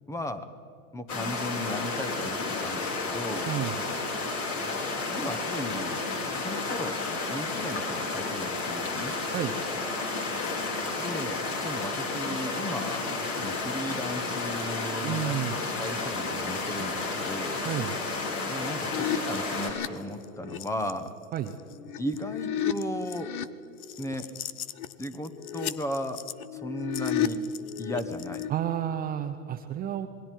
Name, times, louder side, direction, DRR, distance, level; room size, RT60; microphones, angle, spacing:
voice 1, 0.1-0.5 0.9-3.5 5.1-6.0 6.3-6.9 7.3-9.1 11.0-15.4 15.8-17.6 18.5-21.1 22.0-23.3 24.0-24.3 25.0-26.2 26.5-27.4 27.8-28.5, left 1 dB, 5° left, 11 dB, 1.0 m, -36 dB
sound 1, 1.1-19.7, left 3 dB, 40° left, 5.1 m, -32 dB
voice 2, 3.5-3.8 9.3-9.6 15.0-15.6 17.6-18.0 21.3-21.5 28.5-30.1, right 11 dB, 20° right, 7 dB, 0.7 m, -31 dB
sound 2, 18.9-20.9 21.5-23.5 23.8-28.5, left 9 dB, 80° left, 1.0 m, -33 dB
27.5 x 21.0 x 4.6 m, 2.6 s
hypercardioid pair, 125°, 42 cm